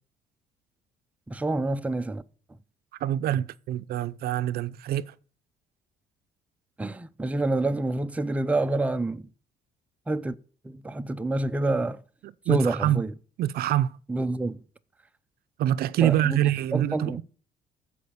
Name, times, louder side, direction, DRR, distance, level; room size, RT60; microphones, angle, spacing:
voice 1, 1.3-2.2 6.8-9.2 10.1-10.4 10.6-12.0 12.5-13.1 14.1-14.6 16.0-16.4 16.7-17.2, right 2 dB, 10° right, 0.5 m, -27 dB
voice 2, 3.0-5.0 12.5-13.0 13.4-13.9 15.6-17.2, right 12 dB, 65° right, 0.5 m, -25 dB
14.5 x 5.1 x 7.0 m
cardioid pair, 110°, 17 cm